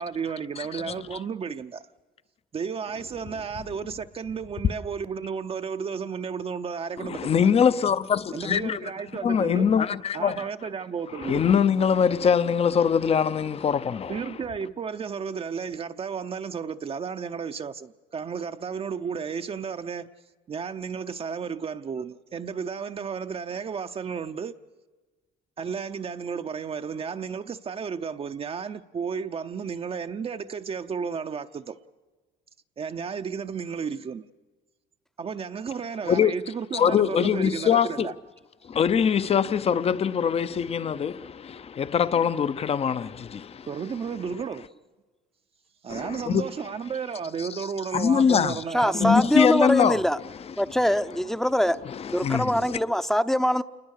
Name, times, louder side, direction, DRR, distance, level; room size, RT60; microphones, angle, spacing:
voice 1, 0.0-1.8 2.5-7.5 8.3-9.7 10.1-11.5 14.1-20.1 20.5-24.6 25.6-31.8 32.8-34.2 35.2-38.1 43.7-44.7 45.8-49.3, right 6 dB, 35° right, 0.7 m, -33 dB
voice 2, 0.6-1.2 7.0-8.9 9.2-10.5 11.2-14.4 36.1-36.3 36.7-38.1 38.6-43.7 45.9-46.5 47.4-47.7 47.9-48.6 48.9-50.0 51.8-52.8, left 7 dB, 35° left, 0.7 m, -23 dB
voice 3, 48.7-50.2 50.6-51.8 52.1-53.6, equal, ahead, 0.7 m, -23 dB
28.0 x 20.5 x 6.6 m
cardioid pair, 110°, 17 cm